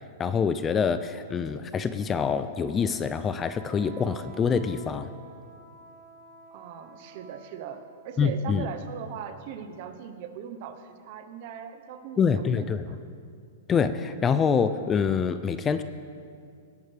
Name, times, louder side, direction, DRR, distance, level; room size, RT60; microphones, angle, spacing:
voice 1, 0.2-5.1 8.2-8.7 12.2-12.9 13.7-15.8, left 6 dB, 15° left, 11 dB, 0.3 m, -25 dB
Wind instrument woodwind instrument, 1.7-7.9, right 1 dB, ahead, 1.9 m, -50 dB
voice 2, 6.5-13.0, right 8 dB, 45° right, 8 dB, 0.9 m, -39 dB
18.5 x 8.8 x 3.3 m, 2.3 s
hypercardioid pair, 150°, 0 cm